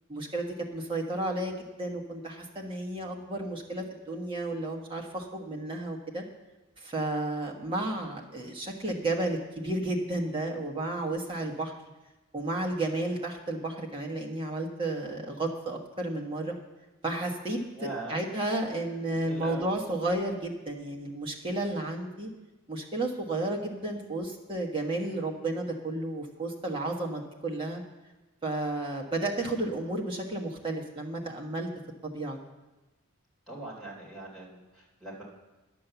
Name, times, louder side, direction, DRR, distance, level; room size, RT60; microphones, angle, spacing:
voice 1, 0.1-6.2 6.8-11.8 12.3-16.5 17.0-17.6 18.1-22.3 22.7-27.8 28.4-31.7 32.0-32.4, right 2 dB, 25° right, 0 dB, 1.3 m, -32 dB
voice 2, 17.7-18.2 19.1-19.7 33.5-35.2, right 2 dB, ahead, -6 dB, 3.1 m, -41 dB
10.5 x 7.5 x 6.9 m, 1.1 s
head